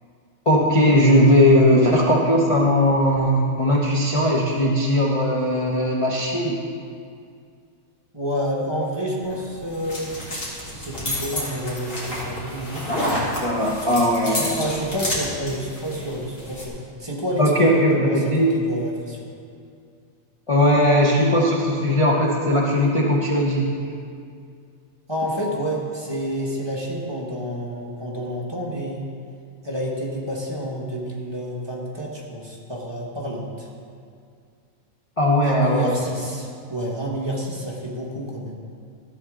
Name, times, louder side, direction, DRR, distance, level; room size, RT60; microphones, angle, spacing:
voice 1, 0.5-6.6 12.9-14.6 17.4-18.5 20.5-23.9 35.2-36.0, left 1 dB, 30° left, -4 dB, 0.8 m, -19 dB
voice 2, 8.1-10.1 10.8-12.9 14.5-19.2 25.1-29.1 29.6-33.7 35.4-38.6, equal, 20° right, -4 dB, 1.5 m, -29 dB
sound 1, 9.2-16.7, left 1 dB, 75° left, 2.7 m, -30 dB
13.5 x 7.8 x 3.7 m, 2.3 s
omnidirectional pair, 1.4 m